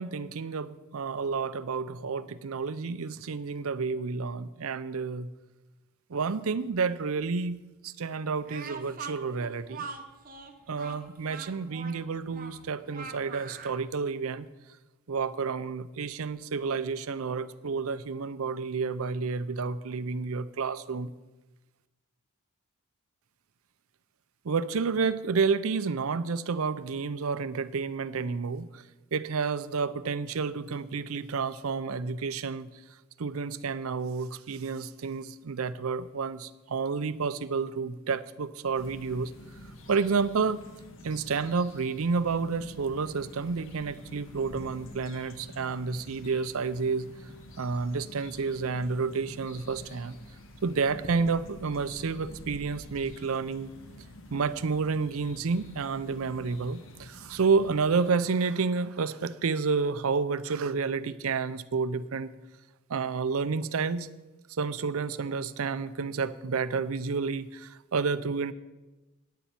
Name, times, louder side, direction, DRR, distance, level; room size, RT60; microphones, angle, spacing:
voice 1, 0.0-5.3 6.1-9.9 10.7-14.5 15.1-21.1 24.4-28.8 29.1-32.7 33.2-39.3 39.9-40.6 41.0-47.1 47.6-50.2 50.6-53.7 54.3-62.3 62.9-64.1 64.6-68.5, right 5 dB, 75° right, 14 dB, 0.5 m, -30 dB
Speech, 8.5-13.8, right 5 dB, 40° right, 0.8 m, -42 dB
sound 1, 38.7-58.1, left 1 dB, 60° left, 1.1 m, -48 dB
9.3 x 7.1 x 9.0 m, 1.1 s
head